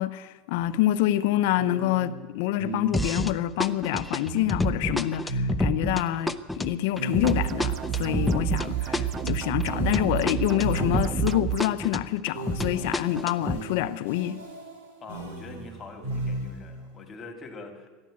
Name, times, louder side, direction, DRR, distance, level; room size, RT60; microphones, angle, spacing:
voice 1, 0.0-14.4, left 13 dB, 75° left, 12 dB, 0.6 m, -27 dB
sound 1, 0.5-0.7 1.6-3.4 4.2-6.2 6.9-11.5 12.3-16.8, right 1 dB, 85° right, 4.0 m, -36 dB
sound 2, 2.9-3.3 3.6-11.3 11.6-13.6, left 1 dB, 5° left, 0.6 m, -29 dB
sound 3, 7.2-11.6, right 11 dB, 40° right, 0.4 m, -30 dB
voice 2, 15.0-17.9, left 3 dB, 25° left, 5 dB, 2.3 m, -43 dB
14.0 x 11.0 x 8.5 m, 1.2 s
supercardioid pair, 130°, 0 cm